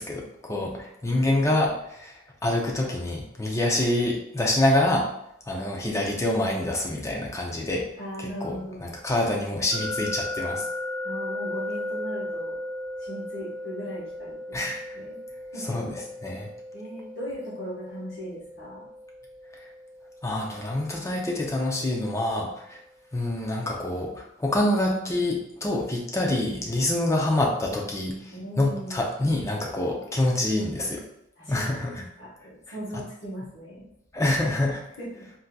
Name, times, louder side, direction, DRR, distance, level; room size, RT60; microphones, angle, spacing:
voice 1, 0.0-2.1 2.4-5.1 5.5-7.9 8.2-10.6 14.5-15.0 15.6-16.5 20.2-22.8 23.1-31.0 31.5-32.0 34.1-34.8, left 1 dB, 15° left, -1 dB, 0.5 m, -26 dB
voice 2, 8.0-8.9 11.0-12.6 13.0-15.2 15.5-15.7 16.7-18.9 28.3-29.0 31.4-33.8 35.0-35.1, equal, 60° left, -8 dB, 1.2 m, -38 dB
sound 1, 9.7-22.6, left 1 dB, 25° right, 0.8 m, -37 dB
3.6 x 2.7 x 2.2 m, 0.78 s
head